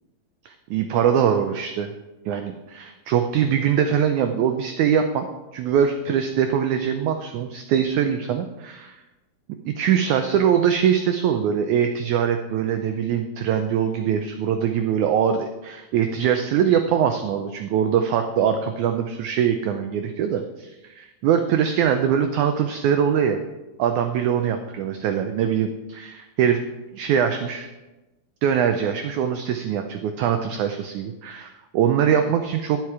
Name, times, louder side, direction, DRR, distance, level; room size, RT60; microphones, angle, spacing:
voice 1, 0.4-1.9 2.3-5.3 5.5-9.0 9.6-23.4 23.8-26.6 26.9-27.7 28.4-32.8, right 8 dB, 85° right, 6 dB, 1.7 m, -22 dB
11.0 x 7.5 x 4.8 m, 1.1 s
omnidirectional pair, 4.1 m